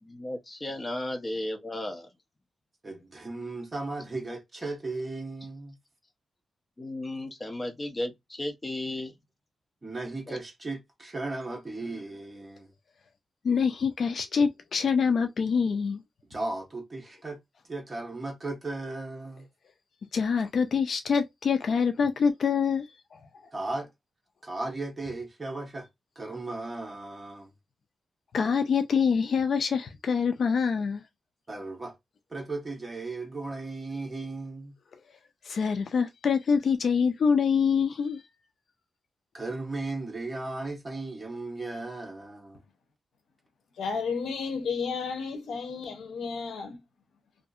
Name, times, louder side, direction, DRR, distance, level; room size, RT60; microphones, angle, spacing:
voice 1, 0.0-2.1 6.8-9.1 10.3-10.4, left 1 dB, 20° left, 0.6 m, -34 dB
voice 2, 2.8-5.8 9.8-12.7 16.3-17.4 17.6-19.5 23.5-23.9 24.4-25.9 26.2-27.5 31.5-32.0 32.3-34.8 39.3-42.6, right 2 dB, 20° right, 1.0 m, -36 dB
voice 3, 13.4-16.0 20.1-23.2 28.3-31.0 35.4-38.2, left 6 dB, 55° left, 0.3 m, -25 dB
voice 4, 43.8-46.8, left 5 dB, 80° left, 0.7 m, -32 dB
2.7 x 2.5 x 2.4 m
wide cardioid pair, 135°, 0 cm